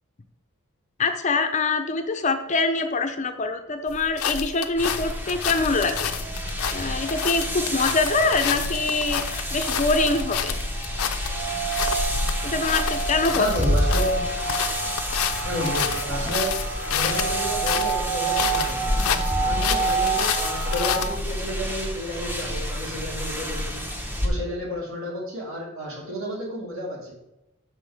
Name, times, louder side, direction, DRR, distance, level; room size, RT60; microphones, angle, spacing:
voice 1, 1.0-6.1 6.7-9.2 9.5-10.5 12.4-13.5, left 3 dB, 35° left, 7 dB, 0.6 m, -24 dB
sound 1, 3.9-21.3, left 7 dB, 85° left, 0.6 m, -29 dB
sound 2, 4.8-24.3, equal, 10° right, 0.9 m, -30 dB
sound 3, 4.9-21.1, right 5 dB, 90° right, 2.3 m, -31 dB
voice 2, 13.3-14.3 15.4-16.6 16.9-19.0 19.4-23.9 24.2-27.1, equal, 65° right, -3 dB, 2.8 m, -31 dB
6.3 x 6.0 x 4.9 m, 0.92 s
head